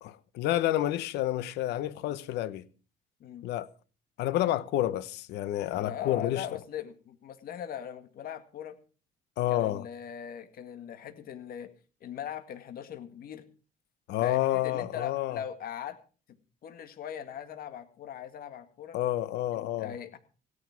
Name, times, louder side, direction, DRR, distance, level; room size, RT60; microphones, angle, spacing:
voice 1, 0.1-2.7 3.4-3.7 4.2-6.5 9.4-9.8 14.1-15.4 18.9-19.9, left 13 dB, 85° left, 1.0 m, -29 dB
voice 2, 5.7-8.8 9.5-11.7 12.0-13.5 14.2-16.0 16.6-19.0 19.6-20.2, left 9 dB, 60° left, 2.0 m, -40 dB
17.0 x 9.8 x 5.9 m
cardioid pair, 110°, 17 cm